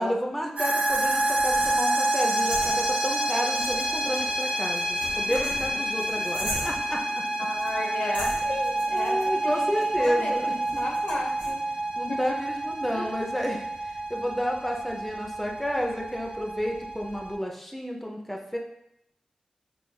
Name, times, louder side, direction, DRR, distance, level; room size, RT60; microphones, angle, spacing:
voice 1, 0.0-7.2 8.9-10.5 12.0-18.6, equal, 5° left, 0 dB, 0.6 m, -31 dB
sound 1, 0.6-17.3, right 1 dB, 80° right, 0.8 m, -28 dB
sound 2, 0.9-3.2 3.5-7.0 7.6-7.8 8.1-11.5, right 1 dB, 65° right, 1.1 m, -39 dB
voice 2, 7.4-11.6 12.1-12.2 12.9-13.1, left 2 dB, 75° left, -2 dB, 0.9 m, -34 dB
4.9 x 2.5 x 2.3 m, 0.79 s
cardioid pair, 40°, 2 cm